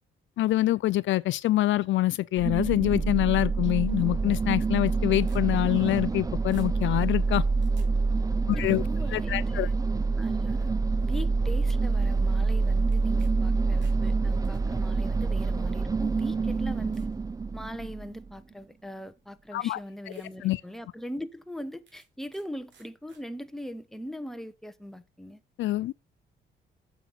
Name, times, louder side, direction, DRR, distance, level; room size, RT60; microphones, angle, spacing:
voice 1, 0.4-7.4 8.5-8.8 9.1-9.7 19.5-19.8 20.4-20.6 25.6-25.9, left 16 dB, 75° left, 0.5 m, -25 dB
sound 1, 2.4-18.3, right 4 dB, 20° right, 0.5 m, -27 dB
sound 2, 5.1-6.2 6.5-7.9 12.9-13.3 13.6-14.6 15.5-15.6 16.2-16.3 16.9-17.2 17.7-18.0 19.2-19.3 19.7-19.8 20.1-20.3 20.7-20.8 21.9-22.4 22.7-23.2, right 5 dB, 65° right, 3.9 m, -59 dB
voice 2, 8.5-9.7 10.2-17.1 17.5-25.4, equal, ahead, 1.1 m, -40 dB
8.9 x 7.3 x 4.2 m
cardioid pair, 90°, 20 cm